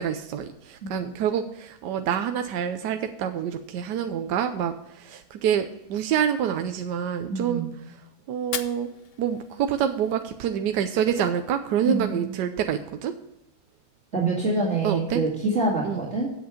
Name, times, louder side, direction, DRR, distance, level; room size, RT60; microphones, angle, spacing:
voice 1, 0.0-7.6 8.3-8.9 9.2-13.1 14.8-15.2 15.8-16.0, right 9 dB, 85° right, 7 dB, 1.2 m, -27 dB
voice 2, 0.8-1.1 7.3-7.7 11.8-12.4 14.1-16.3, right 2 dB, 40° right, -6 dB, 2.5 m, -26 dB
Fire, 8.4-10.4, left 8 dB, 65° left, 0.6 m, -38 dB
8.4 x 7.9 x 5.0 m, 0.85 s
omnidirectional pair, 1.8 m